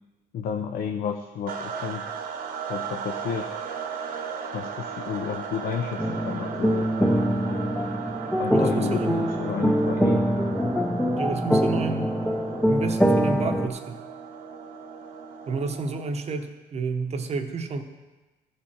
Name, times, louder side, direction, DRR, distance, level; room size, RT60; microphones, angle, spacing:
voice 1, 0.3-2.0 2.7-3.5 4.5-7.4 8.4-10.2, left 7 dB, 60° left, 5 dB, 0.6 m, -32 dB
sound 1, 1.5-16.2, right 6 dB, 60° right, 1.2 m, -36 dB
sound 2, 6.0-13.7, equal, 5° left, 0.5 m, -24 dB
voice 2, 8.5-9.1 11.2-12.1 12.7-14.0 15.5-17.8, right 4 dB, 40° right, 7 dB, 0.9 m, -30 dB
14.0 x 4.9 x 4.4 m, 1.2 s
cardioid pair, 110°, 17 cm